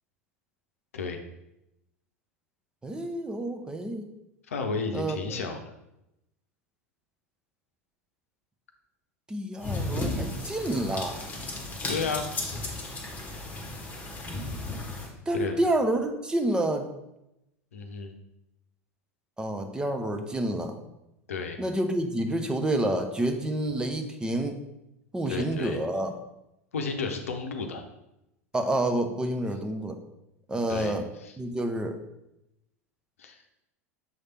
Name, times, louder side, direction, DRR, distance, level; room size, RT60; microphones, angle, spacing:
voice 1, 2.8-4.0 4.9-5.4 9.3-11.2 15.3-16.9 19.4-20.8 21.6-24.6 25.1-26.1 28.5-30.0 30.5-31.1 31.4-32.0, right 1 dB, 10° right, 5 dB, 0.6 m, -28 dB
voice 2, 4.5-5.6 11.9-12.3 15.3-15.6 17.7-18.1 21.3-21.6 25.3-25.8 26.7-27.8 30.7-31.0 31.2-31.3 33.2-33.4, left 4 dB, 70° left, 5 dB, 0.7 m, -32 dB
sound 1, 9.6-15.1, left 2 dB, 20° left, 1.2 m, -34 dB
7.0 x 3.3 x 4.2 m, 0.87 s
figure-of-eight pair, 80°, 8 cm